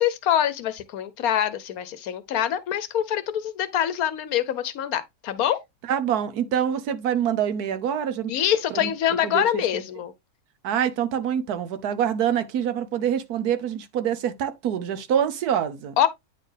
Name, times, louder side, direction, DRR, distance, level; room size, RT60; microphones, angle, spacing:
voice 1, 0.0-5.6 8.3-10.1 16.0-16.1, left 10 dB, 70° left, 1.1 m, -24 dB
voice 2, 5.9-8.3 8.7-8.9 9.2-9.8 10.6-16.1, right 9 dB, 75° right, 1.3 m, -26 dB
9.0 x 4.3 x 3.2 m
omnidirectional pair, 1.7 m